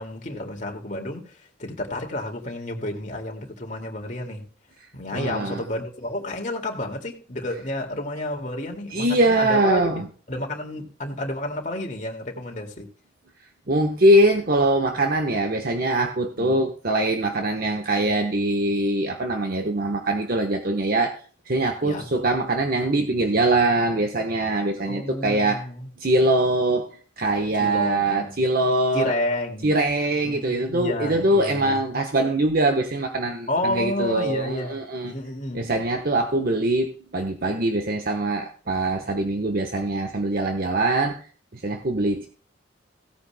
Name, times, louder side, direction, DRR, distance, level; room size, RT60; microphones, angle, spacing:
voice 1, 0.0-4.5 4.9-10.0 10.3-12.9 16.4-16.6 21.8-22.0 24.8-25.9 27.6-28.4 28.9-29.7 30.2-31.8 33.5-34.8 35.0-35.7, left 1 dB, 40° left, 2.2 m, -30 dB
voice 2, 5.1-5.6 8.9-10.0 13.7-21.2 21.5-25.7 26.0-26.9 27.2-29.1 29.6-35.1 35.5-41.3 41.5-42.3, right 1 dB, 50° right, 1.1 m, -22 dB
16.5 x 9.6 x 2.2 m
head